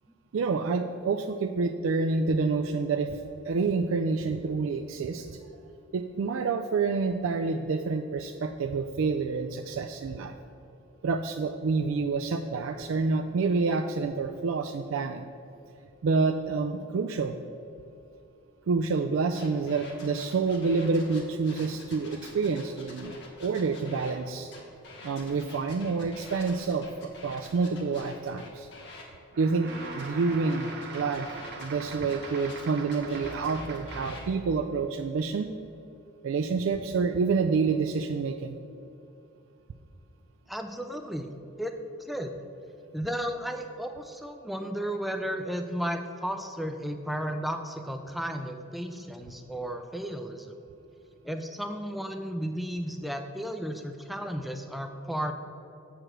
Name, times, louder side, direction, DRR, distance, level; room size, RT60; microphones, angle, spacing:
voice 1, 0.3-5.4 5.9-10.3 11.0-15.2 16.0-17.4 18.7-24.5 25.0-28.7 29.4-31.3 31.6-35.5 36.2-38.6, right 4 dB, 65° right, 5 dB, 0.3 m, -28 dB
sound 1, 19.3-24.1 24.5-29.0 29.7-34.3, left 2 dB, 55° left, 1.6 m, -47 dB
sound 2, 29.3-34.3, right 3 dB, 50° right, 0.8 m, -42 dB
voice 2, 40.5-41.3 41.6-42.3 42.9-50.5 51.2-55.3, equal, ahead, 6 dB, 0.4 m, -34 dB
7.7 x 4.9 x 5.9 m, 2.8 s
head